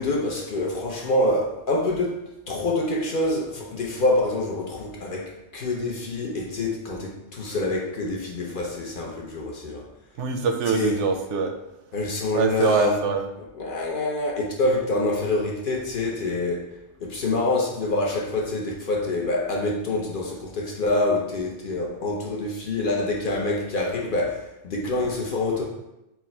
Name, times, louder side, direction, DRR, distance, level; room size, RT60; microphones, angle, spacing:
voice 1, 0.0-2.2 2.5-9.9 10.7-11.0 11.9-13.0 13.6-16.6 17.0-25.7, left 2 dB, 55° left, -1 dB, 0.7 m, -26 dB
voice 2, 10.2-11.5 12.3-13.3, right 5 dB, 80° right, 5 dB, 0.9 m, -23 dB
4.6 x 2.1 x 4.3 m, 0.88 s
omnidirectional pair, 1.2 m